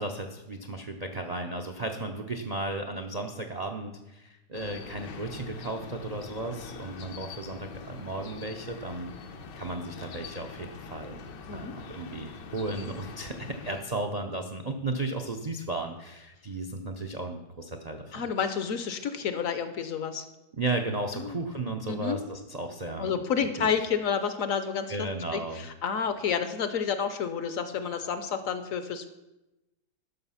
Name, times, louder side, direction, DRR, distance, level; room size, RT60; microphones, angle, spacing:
voice 1, 0.0-9.3 9.6-11.2 11.5-18.2 20.5-23.1 23.4-23.7 24.9-25.7, right 2 dB, 75° right, 5 dB, 0.3 m, -35 dB
sound 1, 4.5-13.8, left 5 dB, 80° left, 1.5 m, -44 dB
voice 2, 18.1-20.2 21.1-21.4 21.9-22.2 23.0-29.1, left 7 dB, 60° left, 10 dB, 0.9 m, -30 dB
12.0 x 6.1 x 5.6 m, 0.98 s
omnidirectional pair, 1.9 m